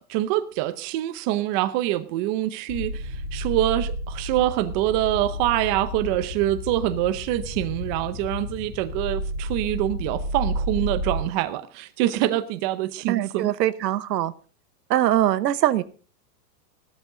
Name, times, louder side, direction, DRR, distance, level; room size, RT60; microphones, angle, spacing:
voice 1, 0.0-13.5, right 14 dB, 30° right, 0.7 m, -25 dB
sound 1, 2.7-11.2, equal, 90° left, 2.8 m, -31 dB
voice 2, 13.1-14.3 14.9-15.8, right 13 dB, 85° right, 1.2 m, -22 dB
15.0 x 13.0 x 3.9 m
supercardioid pair, 160°, 48 cm